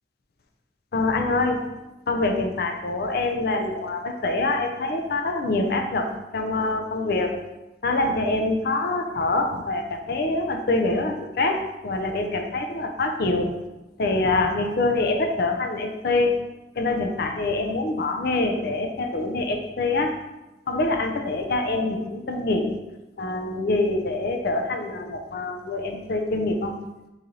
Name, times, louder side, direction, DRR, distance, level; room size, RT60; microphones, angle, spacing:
voice 1, 0.9-1.6 2.1-7.3 7.8-13.5 14.0-16.4 16.8-20.1 20.7-22.8 23.2-26.7, left 2 dB, 60° left, 4 dB, 0.6 m, -25 dB
4.1 x 3.2 x 3.9 m, 1.0 s
head